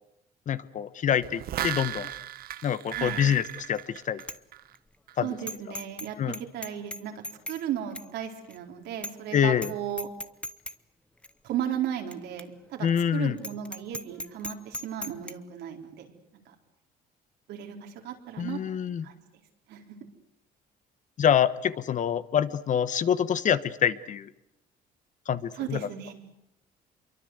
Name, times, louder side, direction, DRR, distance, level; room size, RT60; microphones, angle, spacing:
voice 1, 0.5-2.1 2.6-4.2 5.2-5.3 6.2-6.4 9.3-9.7 12.8-13.4 18.4-19.0 21.2-24.3 25.3-25.8, left 9 dB, 50° left, 15 dB, 1.3 m, -26 dB
sound 1, 1.2-4.8 5.1-5.2, right 12 dB, 60° right, 1.0 m, -35 dB
voice 2, 2.9-3.2 5.2-10.1 11.4-16.1 16.5-16.6 17.5-18.6 19.0-19.2 19.7-20.0 25.5-26.1, right 10 dB, 80° right, 4 dB, 4.2 m, -35 dB
Bicycle bell, 3.5-3.8 4.2-4.4 4.8-4.9 5.5-6.1 6.3-7.6 8.0-8.1 8.5-8.6 9.0-9.3 9.6-9.7 10.0-10.8 11.2-11.3 12.1-12.2 12.4-12.5 12.9-13.0 13.4-15.3, left 1 dB, 5° left, 1.2 m, -37 dB
26.5 x 23.5 x 8.1 m, 0.82 s
cardioid pair, 110°, 17 cm